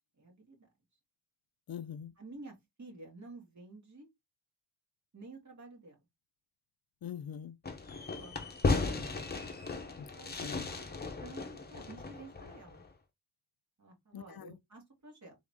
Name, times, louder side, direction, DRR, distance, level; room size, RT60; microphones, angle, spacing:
voice 1, 0.2-0.7 2.2-4.1 5.1-5.9 8.0-8.3 9.6-9.9 10.2-10.6 11.2-11.4 11.7-12.8 13.8-15.4, right 3 dB, 45° right, 2.4 m, -51 dB
voice 2, 1.7-2.1 7.0-7.6 10.0-10.7 14.1-14.6, left 9 dB, 65° left, 0.5 m, -44 dB
Fireworks, 7.6-12.9, left 3 dB, 25° left, 0.8 m, -36 dB
3.8 x 3.7 x 3.6 m
wide cardioid pair, 180°, 39 cm